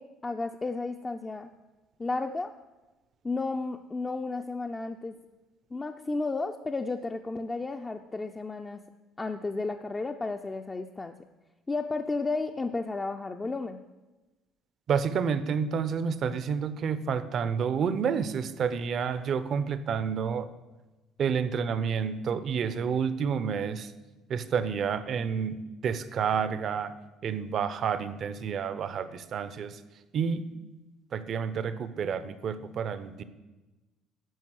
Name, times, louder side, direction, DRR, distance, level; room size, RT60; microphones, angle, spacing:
voice 1, 0.0-1.5 2.0-2.5 3.2-5.2 5.7-8.8 9.2-11.2 11.7-13.8, left 3 dB, 20° left, 5 dB, 0.5 m, -33 dB
voice 2, 14.9-20.5 21.2-23.9 24.3-27.0 27.2-29.8 30.1-30.5 31.1-33.2, right 6 dB, 55° right, 13 dB, 0.7 m, -29 dB
11.0 x 5.3 x 6.4 m, 1.1 s
supercardioid pair, 90°, 0 cm